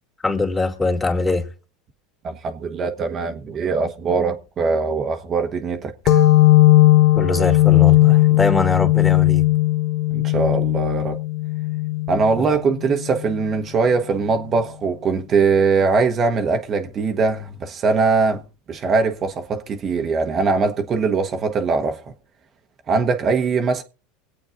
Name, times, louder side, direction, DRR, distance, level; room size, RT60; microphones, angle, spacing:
voice 1, 0.2-1.5 7.1-9.5 12.4-12.6, left 3 dB, 15° left, 2.3 m, -22 dB
voice 2, 2.2-6.2 10.1-11.2 12.1-18.4 18.7-22.0 22.9-23.8, right 4 dB, 35° right, 1.0 m, -21 dB
sound 1, 6.1-13.4, left 16 dB, 55° left, 0.9 m, -17 dB
24.5 x 8.5 x 2.5 m
supercardioid pair, 105°, 0 cm